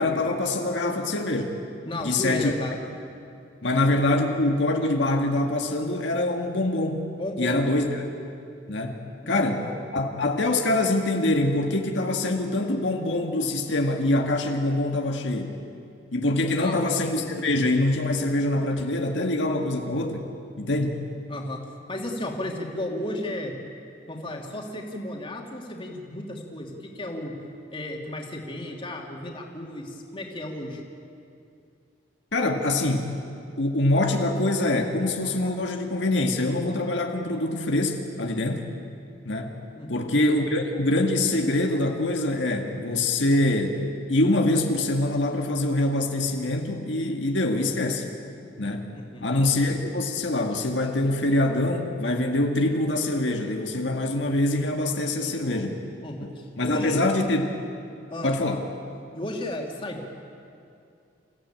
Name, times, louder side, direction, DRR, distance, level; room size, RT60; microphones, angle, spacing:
voice 1, 0.0-1.5 2.0-2.5 3.6-7.1 7.4-7.8 8.7-9.6 9.9-15.6 16.1-20.3 20.6-21.0 32.3-33.1 33.6-38.6 39.2-39.5 39.9-48.1 48.6-48.9 49.2-55.8 56.6-57.4 58.2-58.6, left 2 dB, 85° left, 2 dB, 1.9 m, -24 dB
voice 2, 1.8-2.8 7.2-7.6 9.2-9.8 16.5-16.8 21.3-21.6 21.9-23.5 24.1-27.3 27.7-30.8 39.7-40.1 48.9-49.4 55.2-55.7 56.0-57.0 58.1-58.4 59.1-60.1, left 1 dB, 30° left, 0 dB, 2.7 m, -34 dB
28.0 x 15.5 x 9.0 m, 2.5 s
head